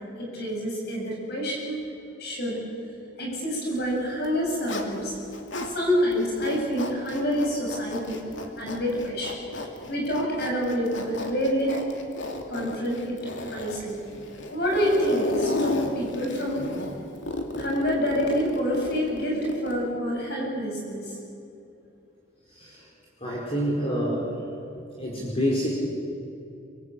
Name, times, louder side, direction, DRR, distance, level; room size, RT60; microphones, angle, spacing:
voice 1, 0.2-1.8 2.2-2.6 3.2-5.2 5.7-8.2 8.6-9.3 9.9-11.8 12.5-14.0 14.5-16.6 17.6-21.0, equal, 55° left, -1 dB, 7.7 m, -27 dB
Zipper (clothing), 4.1-5.7 6.1-19.9, left 1 dB, 75° left, 3.0 m, -34 dB
voice 2, 22.5-22.8 23.2-24.4 24.7-25.7, equal, 30° left, -4 dB, 4.7 m, -27 dB
27.0 x 25.5 x 8.5 m, 2.7 s
head